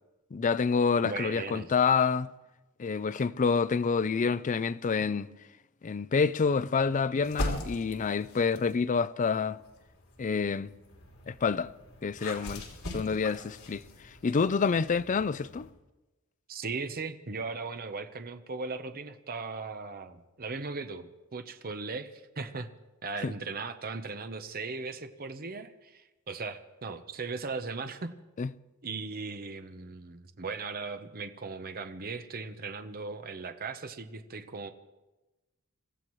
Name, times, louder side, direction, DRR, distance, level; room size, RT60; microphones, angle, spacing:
voice 1, 0.3-2.3 2.8-5.3 5.8-9.6 10.2-10.7 11.3-11.7 12.0-13.8 14.2-15.7 23.2-23.3 28.4-28.5, left 5 dB, 35° left, 0.4 m, -27 dB
voice 2, 1.0-1.7 16.5-22.7 23.0-28.1 28.8-34.7, right 4 dB, 45° right, 0.9 m, -38 dB
sound 1, 7.2-8.8 9.5-15.7, left 1 dB, 70° left, 3.4 m, -41 dB
26.5 x 15.0 x 3.2 m
head